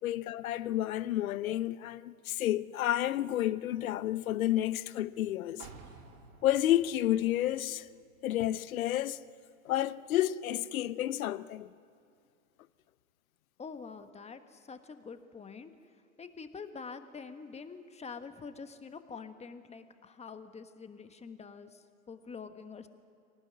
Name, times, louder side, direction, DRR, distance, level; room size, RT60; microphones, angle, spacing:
voice 1, 0.0-5.7 6.4-7.9 8.2-9.2 9.6-11.7, left 13 dB, 70° left, 0.9 m, -30 dB
sound 1, 5.6-9.3 9.7-9.8, right 5 dB, 55° right, 3.9 m, -55 dB
voice 2, 13.6-15.7 16.2-22.9, left 5 dB, 15° left, 1.4 m, -46 dB
23.0 x 18.5 x 9.5 m
hypercardioid pair, 105°, 43 cm